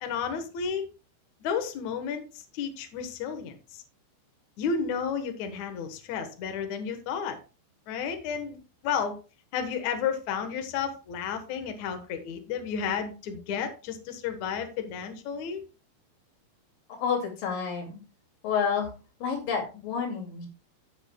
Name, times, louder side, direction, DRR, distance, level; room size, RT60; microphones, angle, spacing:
voice 1, 0.0-0.9 1.4-2.2 2.5-3.5 4.6-7.4 7.9-8.6 8.8-9.2 9.5-15.7, left 6 dB, 75° left, 7 dB, 1.7 m, -32 dB
voice 2, 16.9-18.0 18.4-18.9 19.2-20.5, left 6 dB, 55° left, 2 dB, 3.6 m, -29 dB
14.5 x 7.5 x 2.2 m, 0.33 s
omnidirectional pair, 5.2 m